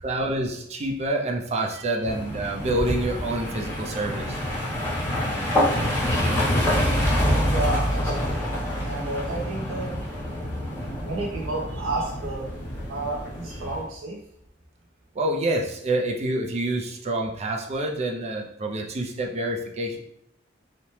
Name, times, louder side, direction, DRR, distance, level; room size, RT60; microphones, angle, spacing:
voice 1, 0.0-4.4 15.1-20.0, right 1 dB, 35° right, 1 dB, 0.4 m, -27 dB
sound 1, 2.0-13.8, equal, 10° left, 0.8 m, -26 dB
voice 2, 7.5-8.5 8.8-10.0 10.5-10.6 11.0-12.5 12.9-14.2, right 2 dB, 90° right, -3 dB, 0.5 m, -31 dB
2.7 x 2.0 x 3.1 m, 0.72 s
head